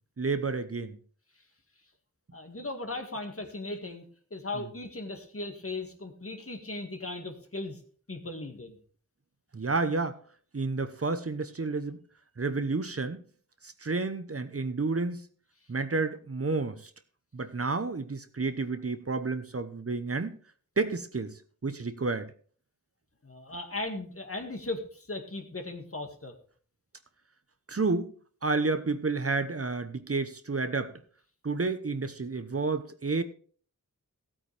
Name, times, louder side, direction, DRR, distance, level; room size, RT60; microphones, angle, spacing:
voice 1, 0.2-1.0 9.5-10.2 10.5-12.0 12.4-13.2 13.6-15.2 15.7-16.8 17.3-20.3 20.8-21.3 21.6-22.3 27.7-28.1 28.4-30.9 31.4-33.2, right 3 dB, 45° right, 0.9 m, -30 dB
voice 2, 2.3-4.1 4.3-7.8 8.1-8.8 23.2-26.3, left 2 dB, 45° left, 2.0 m, -37 dB
15.0 x 8.7 x 3.4 m
wide cardioid pair, 45°, 32 cm